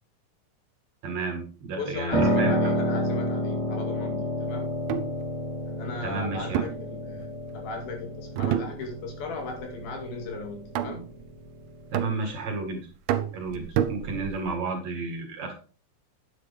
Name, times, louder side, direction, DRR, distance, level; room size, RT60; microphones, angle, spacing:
voice 1, 1.0-2.6 6.0-6.6 11.9-12.8 13.3-15.5, right 3 dB, 55° right, 2.9 m, -32 dB
voice 2, 1.8-4.7 5.7-7.3 7.5-11.1 13.5-13.7, left 3 dB, 85° left, 4.1 m, -37 dB
Piano, 2.1-12.1, equal, ahead, 3.3 m, -30 dB
sound 1, 4.7-5.2 6.5-7.6 8.4-9.2 9.5-9.9 10.8-11.3 11.9-12.6 13.1-14.5, right 10 dB, 85° right, 2.5 m, -29 dB
9.8 x 8.9 x 3.4 m
omnidirectional pair, 4.1 m